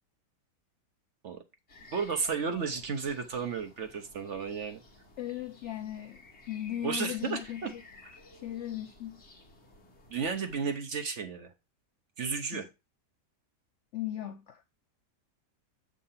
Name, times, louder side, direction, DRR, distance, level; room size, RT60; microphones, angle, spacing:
sound 1, 1.7-10.8, left 2 dB, 40° left, 1.7 m, -55 dB
voice 1, 1.9-4.8 6.8-7.7 10.1-11.5 12.2-12.7, right 5 dB, 55° right, 0.9 m, -33 dB
voice 2, 5.2-7.8 8.3-9.2 12.5-12.7 13.9-14.6, left 12 dB, 70° left, 0.7 m, -37 dB
7.6 x 3.7 x 5.6 m
omnidirectional pair, 1.8 m